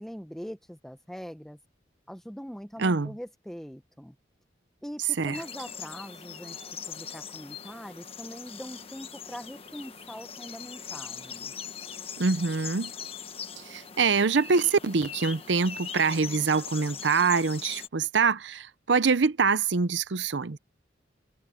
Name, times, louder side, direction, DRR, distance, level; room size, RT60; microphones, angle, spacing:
voice 1, 0.0-1.6 2.1-4.2 4.8-11.5, equal, ahead, 0.8 m, -42 dB
voice 2, 2.8-3.1 5.2-5.4 12.2-12.9 13.7-20.6, right 5 dB, 75° right, 0.7 m, -25 dB
sound 1, 5.3-17.9, left 7 dB, 30° left, 1.3 m, -41 dB
head